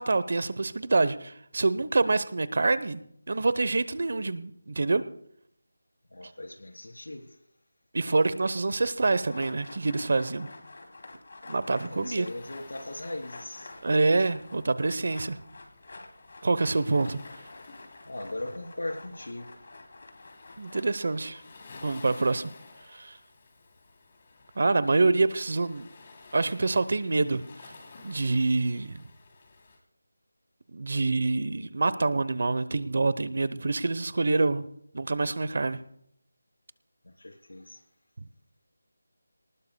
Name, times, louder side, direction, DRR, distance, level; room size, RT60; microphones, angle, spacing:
voice 1, 0.0-5.0 6.2-6.3 7.9-10.5 11.5-12.3 13.8-15.4 16.4-17.2 20.6-21.4 21.8-22.5 22.9-23.2 24.6-25.9 26.3-27.7 28.0-29.1 30.7-34.6 34.9-35.8 38.2-38.3, right 3 dB, 55° right, 15 dB, 0.9 m, -26 dB
voice 2, 6.1-7.4 11.8-13.7 18.1-19.5 37.0-37.8, left 1 dB, 85° left, 4 dB, 3.6 m, -39 dB
sound 1, 9.1-20.8, left 2 dB, 55° left, 2.8 m, -48 dB
Waves surf, 11.8-29.8, left 3 dB, 35° left, 3.2 m, -53 dB
24.0 x 19.5 x 2.3 m, 0.70 s
figure-of-eight pair, 170°, 0 cm